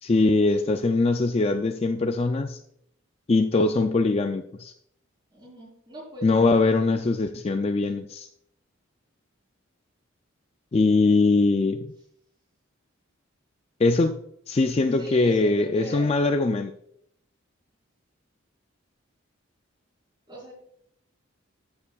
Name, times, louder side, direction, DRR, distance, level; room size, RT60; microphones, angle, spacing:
voice 1, 0.0-2.6 3.3-4.7 6.2-8.3 10.7-11.9 13.8-14.2 14.5-16.7, left 3 dB, 30° left, 7 dB, 0.3 m, -22 dB
voice 2, 5.3-6.4 15.0-16.1 20.3-20.5, right 1 dB, 20° right, -3 dB, 3.8 m, -40 dB
13.5 x 7.0 x 2.4 m, 0.72 s
head